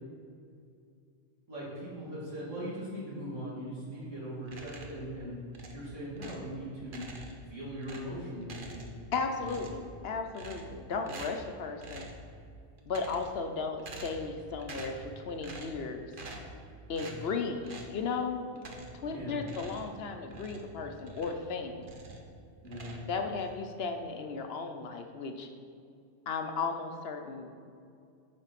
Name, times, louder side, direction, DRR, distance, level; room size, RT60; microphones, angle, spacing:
voice 1, 1.5-7.1 7.5-9.0 9.4-9.5 17.0-17.1 19.1-19.4 22.6-23.0, equal, 80° right, -7 dB, 2.8 m, -40 dB
sound 1, 4.4-5.1 5.5-6.5 6.9-7.5 7.8-9.1 9.4-9.9 10.3-10.8 11.0-11.5 11.8-12.2 12.8-13.4 13.8-14.3 14.6-15.1 15.4-15.8 16.1-16.6 16.9-17.2 17.6-18.0 18.6-19.1 19.4-21.5 21.8-22.3 22.6-23.5, right 2 dB, 50° right, 1.0 m, -46 dB
voice 2, 9.1-12.1 12.9-16.1 16.9-18.4 18.9-21.9 23.1-25.5 26.3-27.7, left 4 dB, 60° left, 5 dB, 0.8 m, -35 dB
9.5 x 4.4 x 5.8 m, 2.4 s
omnidirectional pair, 1.3 m